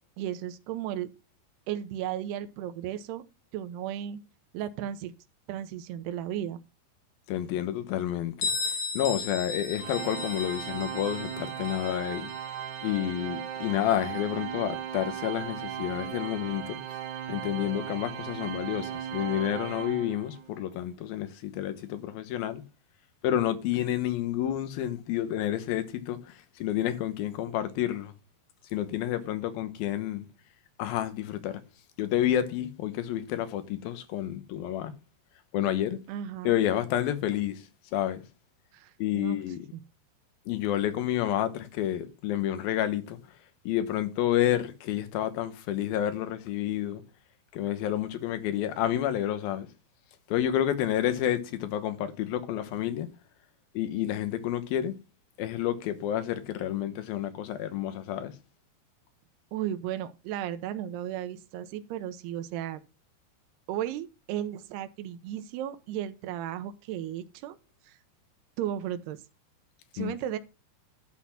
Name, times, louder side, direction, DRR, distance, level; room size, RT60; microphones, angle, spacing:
voice 1, 0.2-1.1 1.7-3.2 3.5-4.2 4.5-5.1 5.5-6.6 36.1-36.6 38.7-39.4 39.7-39.8 59.5-62.8 63.7-67.6 67.9-68.0 68.6-69.2 69.9-70.4, right 11 dB, 85° right, 2.8 m, -35 dB
voice 2, 7.3-12.3 12.8-16.8 17.3-22.6 23.2-28.1 28.7-30.2 30.8-31.6 32.0-34.9 35.5-36.0 36.4-37.6 37.9-38.2 39.0-39.6 40.5-43.2 43.7-47.0 47.5-49.7 50.3-53.1 53.7-54.9 55.4-58.3 70.0-70.1, left 11 dB, 70° left, 2.7 m, -29 dB
Bell, 8.4-13.9, left 4 dB, 55° left, 2.5 m, -36 dB
Organ, 9.8-20.6, right 9 dB, 65° right, 2.2 m, -37 dB
12.0 x 4.2 x 5.8 m
omnidirectional pair, 4.8 m